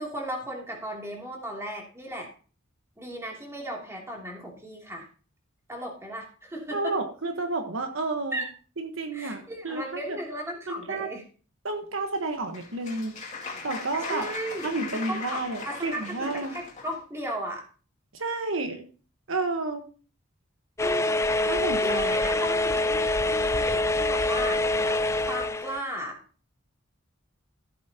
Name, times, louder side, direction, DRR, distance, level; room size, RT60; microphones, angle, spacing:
voice 1, 0.0-2.3 3.0-5.1 5.7-6.9 8.3-8.5 9.1-11.2 14.0-17.7 20.8-21.2 21.8-24.6 25.2-26.2, equal, 15° right, -1 dB, 2.9 m, -36 dB
voice 2, 6.7-8.4 8.8-10.2 10.7-11.1 11.6-13.1 13.6-14.3 14.6-16.5 18.1-18.8 19.3-19.8 21.5-22.2, right 3 dB, 75° right, 5 dB, 1.3 m, -31 dB
Applause, 12.1-17.0, left 4 dB, 35° left, 2.5 m, -39 dB
sound 1, 20.8-25.8, left 2 dB, 15° left, 0.4 m, -25 dB
14.5 x 8.4 x 2.9 m, 0.39 s
head